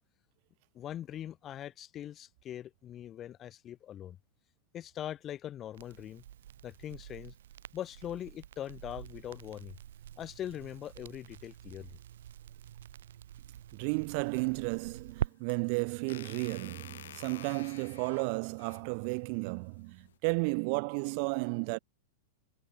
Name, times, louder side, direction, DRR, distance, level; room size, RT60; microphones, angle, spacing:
voice 1, 0.7-4.2 4.7-6.2 6.6-7.3 7.7-9.8 10.2-12.0, left 11 dB, 20° left, 0.4 m, -42 dB
Crackle, 5.7-15.3, right 11 dB, 80° right, 1.9 m, -45 dB
voice 2, 13.7-21.8, right 36 dB, 45° right, 0.5 m, -33 dB
sound 1, 14.9-20.2, left 10 dB, 90° left, 2.7 m, -51 dB
supercardioid pair, 160°, 0 cm